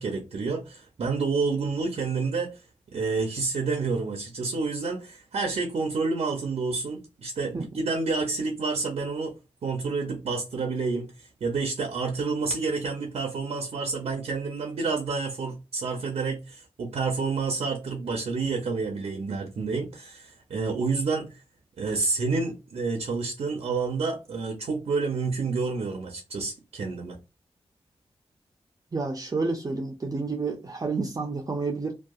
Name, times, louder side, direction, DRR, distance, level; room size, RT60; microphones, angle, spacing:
voice 1, 0.0-2.6 2.9-21.4 21.8-27.2, right 4 dB, 80° right, 0.6 m, -29 dB
voice 2, 28.9-32.0, right 3 dB, 35° right, 0.6 m, -29 dB
2.7 x 2.3 x 2.3 m
cardioid pair, 50°, 11 cm